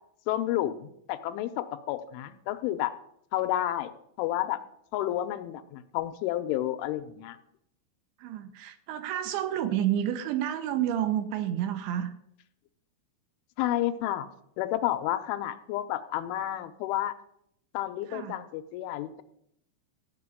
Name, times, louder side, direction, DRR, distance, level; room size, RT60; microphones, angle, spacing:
voice 1, 0.3-2.9 3.3-3.9 4.2-4.6 4.9-7.4 13.6-14.3 14.6-17.1 17.7-19.2, left 13 dB, 85° left, 9 dB, 3.1 m, -30 dB
voice 2, 8.2-12.1 18.1-18.4, right 11 dB, 80° right, 8 dB, 3.0 m, -30 dB
15.0 x 6.0 x 9.6 m, 0.72 s
omnidirectional pair, 5.6 m